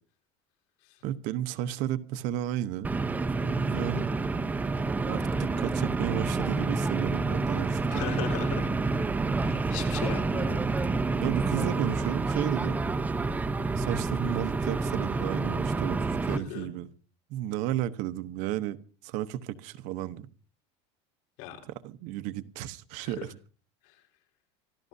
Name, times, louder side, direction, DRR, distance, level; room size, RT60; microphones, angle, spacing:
voice 1, 1.0-2.9 3.4-4.1 5.0-8.0 11.2-12.8 13.8-16.9 17.3-20.3 21.7-23.4, right 12 dB, 60° right, 1.0 m, -33 dB
sound 1, 2.8-16.4, right 3 dB, 10° right, 0.8 m, -28 dB
voice 2, 7.9-8.9 9.4-10.7 16.3-16.7 21.4-21.6 23.0-23.2 23.8-24.0, left 10 dB, 65° left, 4.3 m, -38 dB
26.0 x 14.0 x 2.7 m
cardioid pair, 145°, 14 cm